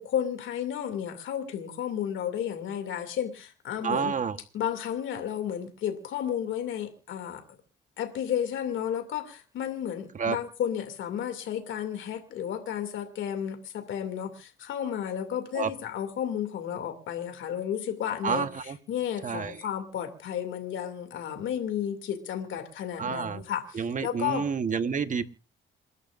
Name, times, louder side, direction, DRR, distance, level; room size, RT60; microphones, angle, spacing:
voice 1, 0.0-4.1 4.5-7.4 8.0-24.4, left 9 dB, 75° left, 6 dB, 2.7 m, -32 dB
voice 2, 3.8-4.4 10.2-10.4 15.5-15.7 18.2-18.8 19.2-19.5 23.0-23.4 23.8-25.2, right 6 dB, 40° right, 10 dB, 1.3 m, -29 dB
28.0 x 11.5 x 2.6 m, 0.33 s
cardioid pair, 90°, 20 cm